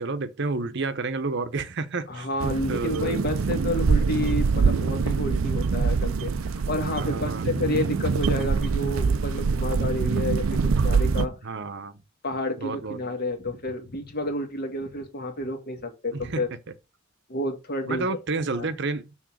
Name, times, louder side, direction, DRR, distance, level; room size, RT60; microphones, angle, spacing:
voice 1, 0.0-3.2 7.0-7.5 11.4-12.0 12.6-13.0 16.1-16.4 17.9-19.1, right 3 dB, 60° right, 0.8 m, -30 dB
voice 2, 2.1-11.4 12.2-16.5 17.3-18.1 18.5-18.7, left 1 dB, 50° left, 1.8 m, -30 dB
sound 1, 2.4-11.3, right 5 dB, 80° right, 0.5 m, -24 dB
6.2 x 3.8 x 6.1 m
head